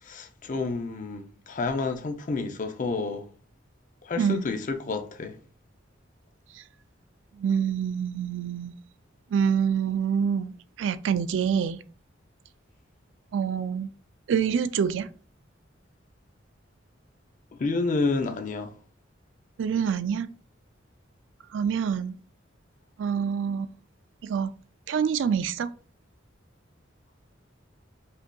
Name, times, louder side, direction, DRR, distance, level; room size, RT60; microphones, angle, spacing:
voice 1, 0.0-3.2 4.0-5.4 17.6-18.7, left 3 dB, 45° left, 0.4 m, -29 dB
voice 2, 7.4-8.7 9.3-11.8 13.3-13.9 14.3-15.1 19.6-20.3 21.5-22.1 23.0-23.7 24.2-24.5 24.9-25.7, right 7 dB, 80° right, 0.3 m, -26 dB
5.0 x 2.7 x 2.2 m
head